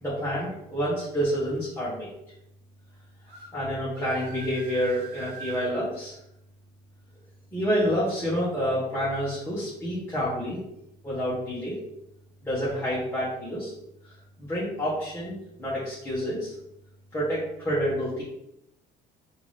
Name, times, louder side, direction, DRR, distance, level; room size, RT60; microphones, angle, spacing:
voice 1, 0.0-2.1 3.5-6.2 7.5-10.6 11.0-11.7 12.4-13.7 14.4-16.5 17.1-18.2, equal, 15° left, -9 dB, 1.1 m, -28 dB
sound 1, 3.3-3.5 3.9-5.7, right 6 dB, 80° right, 1.1 m, -43 dB
3.4 x 2.6 x 3.3 m, 0.82 s
cardioid pair, 110°, 17 cm